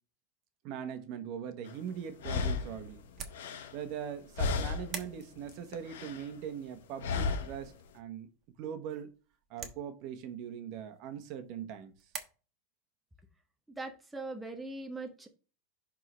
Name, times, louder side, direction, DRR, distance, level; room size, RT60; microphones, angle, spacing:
voice 1, 0.6-3.0 3.7-8.3 8.6-9.1 9.5-11.9, right 8 dB, 50° right, 1.1 m, -41 dB
sound 1, 1.7-1.8 2.2-4.1 4.4-5.1 5.4-6.3 7.0-7.7, left 4 dB, 90° left, 1.1 m, -34 dB
sound 2, 1.8-12.2, right 7 dB, 30° right, 1.2 m, -50 dB
voice 2, 13.8-15.3, right 2 dB, 5° right, 0.8 m, -40 dB
11.0 x 3.7 x 3.1 m
supercardioid pair, 145°, 0 cm